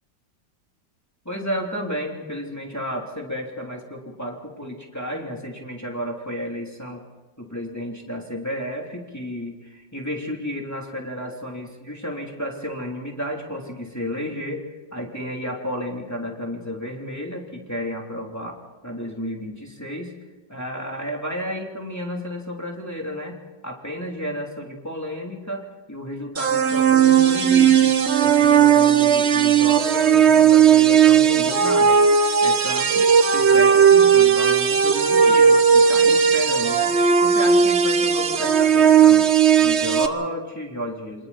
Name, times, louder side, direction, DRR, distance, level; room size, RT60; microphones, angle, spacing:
voice 1, 1.2-7.0 7.4-14.6 14.9-18.6 18.8-20.1 20.5-23.4 23.6-27.9 28.2-32.0 32.4-36.9 37.2-39.2 39.6-41.3, equal, 10° left, -1 dB, 3.1 m, -32 dB
sound 1, 26.4-40.1, right 7 dB, 45° right, 1.1 m, -16 dB
28.5 x 26.0 x 4.2 m, 1.1 s
omnidirectional pair, 2.0 m